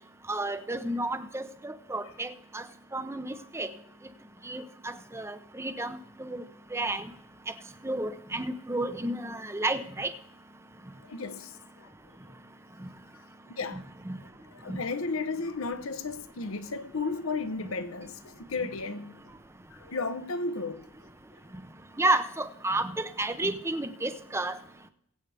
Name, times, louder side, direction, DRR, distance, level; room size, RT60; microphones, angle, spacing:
voice 1, 0.3-2.6 2.9-3.7 4.4-6.4 6.7-7.0 7.8-10.1 13.7-14.2 14.7-14.8 22.0-24.6, right 2 dB, 10° right, 0.7 m, -31 dB
voice 2, 11.0-11.9 13.5-13.8 14.5-19.2 19.7-20.9, left 3 dB, 65° left, 0.8 m, -34 dB
22.0 x 8.2 x 3.4 m
head